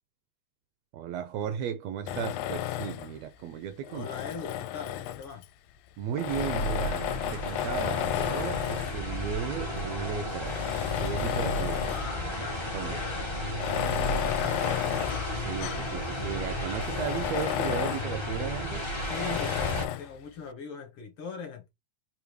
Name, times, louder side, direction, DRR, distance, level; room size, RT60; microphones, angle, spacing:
voice 1, 0.9-4.1 6.0-11.8 12.7-13.0 15.3-19.0, right 9 dB, 80° right, 1.6 m, -35 dB
Tools, 2.1-3.2 3.8-5.5 6.1-9.1 9.8-9.9 10.4-12.2 12.5-12.6 13.5-15.9 16.3-16.4 16.8-18.1 19.1-20.1, left 12 dB, 80° left, 1.9 m, -32 dB
voice 2, 3.9-5.4 11.8-13.4 13.8-14.9 19.0-21.7, left 5 dB, 60° left, 1.7 m, -41 dB
sound 1, 6.3-19.8, left 1 dB, 30° left, 0.5 m, -33 dB
5.0 x 2.8 x 3.2 m
omnidirectional pair, 3.5 m